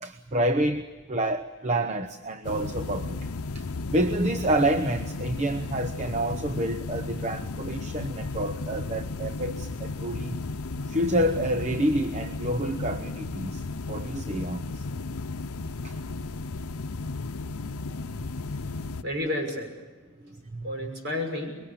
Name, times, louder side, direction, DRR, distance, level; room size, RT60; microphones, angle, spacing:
voice 1, 0.0-10.4 10.9-14.8 15.8-16.0 20.2-20.7, right 1 dB, 30° right, 0.8 m, -28 dB
sound 1, 2.4-19.0, left 3 dB, 80° left, 0.8 m, -34 dB
voice 2, 18.4-19.8 20.6-21.6, left 1 dB, 50° right, 6.3 m, -32 dB
25.5 x 22.5 x 8.5 m
head